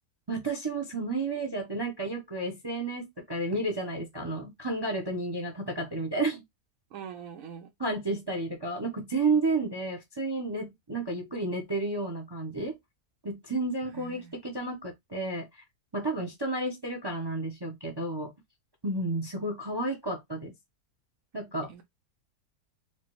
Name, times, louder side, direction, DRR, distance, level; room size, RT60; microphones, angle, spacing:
voice 1, 0.3-6.4 7.8-12.7 13.2-15.6 15.9-18.3 18.8-20.5 21.3-21.7, right 2 dB, 30° right, 0.4 m, -31 dB
voice 2, 6.9-7.7 13.8-14.4 21.7-21.8, right 7 dB, 70° right, 0.9 m, -43 dB
4.4 x 2.3 x 3.0 m
omnidirectional pair, 1.6 m